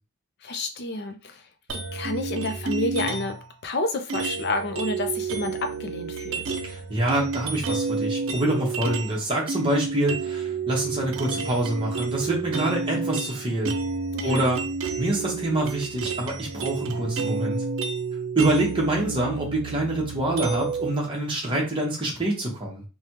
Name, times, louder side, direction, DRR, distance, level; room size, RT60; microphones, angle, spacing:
voice 1, 0.4-1.4 1.7-3.4 3.6-6.8 14.1-14.5, left 2 dB, 50° left, 7 dB, 0.5 m, -30 dB
sound 1, 1.7-3.4 4.1-9.2 9.5-20.9, right 4 dB, 60° right, 0.5 m, -30 dB
voice 2, 6.7-13.7 14.2-14.6 15.0-17.6 18.3-22.8, right 1 dB, 25° right, -3 dB, 0.9 m, -26 dB
3.3 x 2.2 x 2.9 m, 0.34 s
head